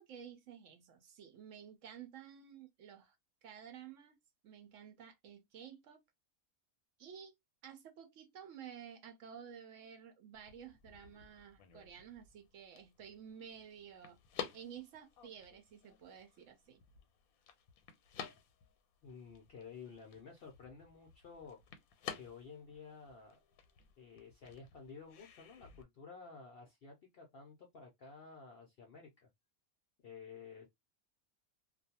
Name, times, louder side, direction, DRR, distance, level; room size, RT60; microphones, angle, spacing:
voice 1, 0.0-3.2 3.4-4.2 4.4-6.0 7.0-7.3 7.6-14.2 14.5-16.8, right 8 dB, 70° right, 0.8 m, -52 dB
sound 1, 10.3-25.8, left 8 dB, 85° left, 1.1 m, -52 dB
voice 2, 19.0-21.6 22.1-23.4 24.0-29.3 30.0-30.7, left 5 dB, 65° left, 0.6 m, -53 dB
2.4 x 2.2 x 2.7 m
omnidirectional pair, 1.5 m